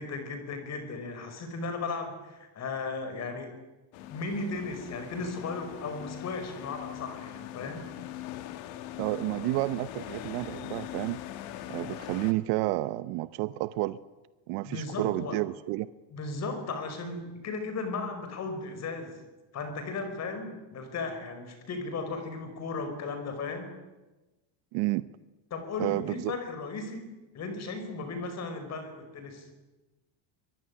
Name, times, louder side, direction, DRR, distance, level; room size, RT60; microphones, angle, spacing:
voice 1, 0.0-3.5 4.1-7.9 14.6-15.4 16.1-19.2 19.5-23.7 25.5-27.1 27.3-29.5, left 3 dB, 35° left, 7 dB, 5.5 m, -36 dB
sound 1, 3.9-12.3, left 13 dB, 85° left, 2.6 m, -41 dB
voice 2, 9.0-11.2 11.7-14.0 14.5-15.9 24.7-25.0 25.8-26.3, right 18 dB, 80° right, 14 dB, 1.0 m, -30 dB
24.0 x 23.0 x 9.9 m, 1.1 s
cardioid pair, 165°, 46 cm